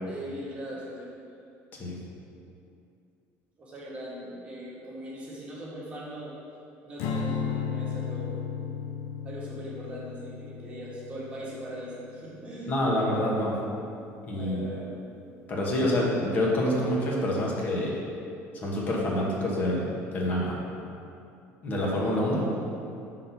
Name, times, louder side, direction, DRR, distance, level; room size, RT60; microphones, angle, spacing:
voice 1, 0.0-1.1 3.6-6.4 6.8-8.3 9.2-12.7 14.3-14.9, equal, 20° right, -6 dB, 1.4 m, -40 dB
Strum, 7.0-13.4, left 6 dB, 80° left, 0.6 m, -35 dB
voice 2, 12.7-13.6 14.3-14.6 15.5-17.9 18.5-20.6 21.6-22.5, left 1 dB, 30° left, -3 dB, 1.3 m, -27 dB
6.4 x 4.0 x 5.8 m, 2.6 s
cardioid pair, 170°, 5 cm